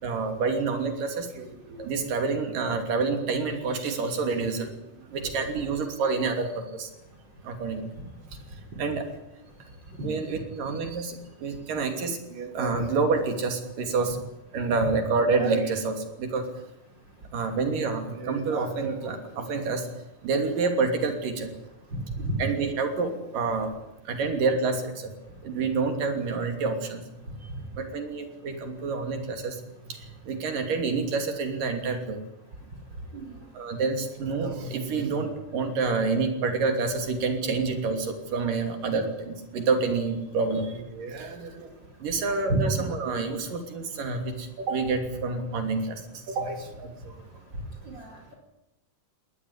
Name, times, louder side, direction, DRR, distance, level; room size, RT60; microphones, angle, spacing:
voice 1, 0.0-4.7 5.1-6.9 7.5-7.8 8.8-9.0 10.0-14.2 14.5-16.4 17.3-19.8 20.2-21.5 22.4-23.7 24.1-25.1 25.4-27.0 27.8-29.5 29.9-30.0 30.3-32.2 33.6-41.7 42.0-46.0 46.3-46.9, right 4 dB, 80° right, 6 dB, 4.6 m, -28 dB
voice 2, 42.5-42.8 47.8-48.3, right 2 dB, 35° right, 1 dB, 4.9 m, -29 dB
21.0 x 19.0 x 9.9 m, 0.89 s
omnidirectional pair, 3.8 m